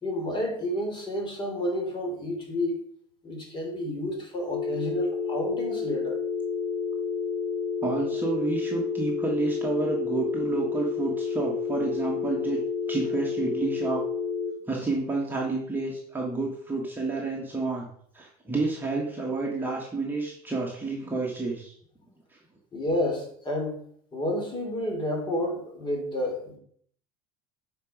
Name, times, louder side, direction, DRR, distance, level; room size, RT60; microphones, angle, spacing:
voice 1, 0.0-2.8 3.2-6.2 22.7-23.8 24.1-26.6, left 1 dB, 25° left, 1 dB, 3.4 m, -30 dB
sound 1, 4.5-14.5, left 5 dB, 60° left, 1.2 m, -30 dB
voice 2, 7.8-12.6 12.9-14.0 14.7-17.9 18.1-21.8 22.3-22.4, right 3 dB, 10° right, -3 dB, 1.8 m, -30 dB
9.1 x 5.4 x 5.0 m, 0.62 s
supercardioid pair, 120°, 19 cm